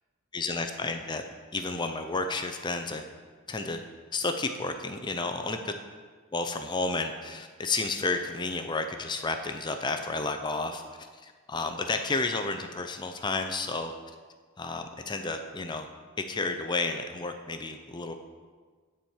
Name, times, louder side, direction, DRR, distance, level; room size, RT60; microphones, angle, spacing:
voice 1, 0.3-1.2 1.5-3.0 3.5-3.8 4.1-5.6 6.3-13.9 14.6-15.9 16.3-18.2, left 3 dB, 20° left, 6 dB, 0.5 m, -31 dB
9.9 x 4.5 x 7.2 m, 1.5 s
head